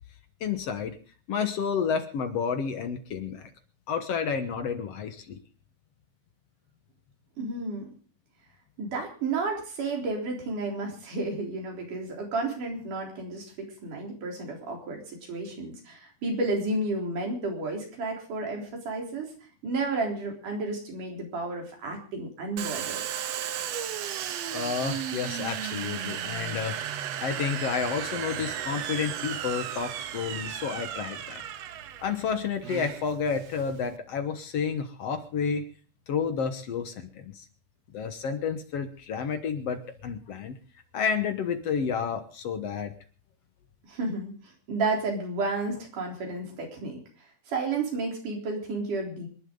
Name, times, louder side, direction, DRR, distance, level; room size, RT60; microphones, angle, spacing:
voice 1, 0.4-1.0 1.3-3.5 3.9-5.4 24.5-26.8 27.2-31.4 32.0-35.6 36.1-37.5 37.9-40.6 40.9-43.0, left 6 dB, 60° left, 8 dB, 2.1 m, -30 dB
voice 2, 7.4-7.9 8.8-15.0 15.3-19.3 19.6-23.0 43.9-44.3 44.7-47.0 47.5-49.3, right 3 dB, 80° right, 0 dB, 5.3 m, -31 dB
Domestic sounds home sounds, 22.6-33.9, right 10 dB, 65° right, 1.9 m, -35 dB
26.0 x 11.0 x 3.8 m, 0.39 s
omnidirectional pair, 3.6 m